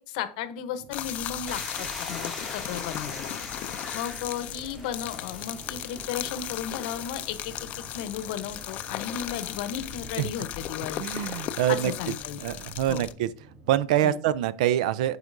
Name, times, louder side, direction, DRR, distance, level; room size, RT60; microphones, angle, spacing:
voice 1, 0.0-3.3 3.9-7.5 7.9-11.0 11.7-12.4 12.9-13.0 14.0-14.2, left 9 dB, 75° left, 0.9 m, -34 dB
sound 1, 0.8-14.0, right 2 dB, 35° right, 1.6 m, -51 dB
sound 2, 0.9-13.1, left 12 dB, 40° left, 0.4 m, -36 dB
sound 3, 1.5-10.1, right 1 dB, 10° right, 1.0 m, -44 dB
voice 2, 11.0-11.9 12.4-13.3 13.7-15.2, right 12 dB, 85° right, 0.5 m, -25 dB
8.0 x 4.9 x 2.6 m
supercardioid pair, 155°, 4 cm